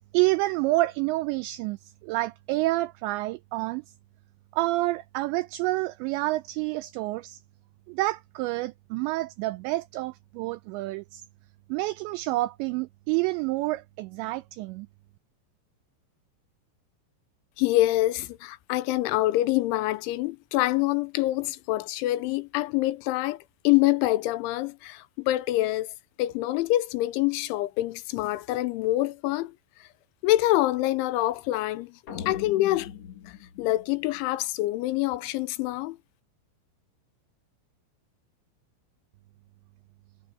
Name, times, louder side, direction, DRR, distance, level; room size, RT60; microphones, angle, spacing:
voice 1, 0.1-3.8 4.5-7.4 7.9-11.2 11.7-14.9, right 19 dB, 90° right, 2.5 m, -28 dB
voice 2, 17.6-25.9 26.2-29.6 29.8-29.9 30.2-32.9 33.3-36.0, left 16 dB, 85° left, 3.0 m, -26 dB
sound 1, 32.1-34.5, left 9 dB, 45° left, 2.5 m, -41 dB
omnidirectional pair, 5.7 m